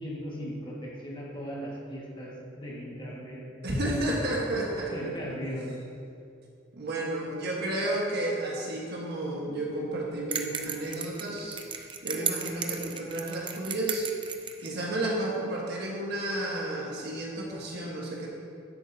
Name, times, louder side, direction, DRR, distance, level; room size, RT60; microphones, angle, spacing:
voice 1, 0.0-3.4 4.9-5.8, equal, 25° left, -5 dB, 1.8 m, -37 dB
voice 2, 3.6-4.9 6.7-14.1 14.6-18.3, right 1 dB, 60° right, -3 dB, 1.4 m, -32 dB
sound 1, 10.3-14.7, right 7 dB, 25° right, 0.5 m, -34 dB
10.0 x 8.2 x 2.8 m, 2.4 s
head